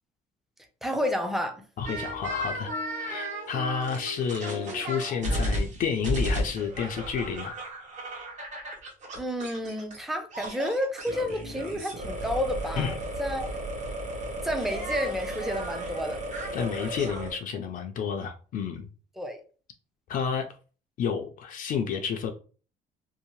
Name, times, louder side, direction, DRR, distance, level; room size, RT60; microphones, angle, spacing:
voice 1, 0.8-1.6 9.2-13.5 14.4-16.2 19.2-19.4, equal, ahead, 0.5 m, -30 dB
voice 2, 1.8-7.6 12.8-12.9 16.5-18.9 20.1-20.5 21.0-22.3, left 6 dB, 55° left, 0.4 m, -30 dB
sound 1, 1.9-10.0 10.3-17.3, right 1 dB, 45° right, 1.0 m, -34 dB
2.7 x 2.0 x 3.0 m
cardioid pair, 110°, 17 cm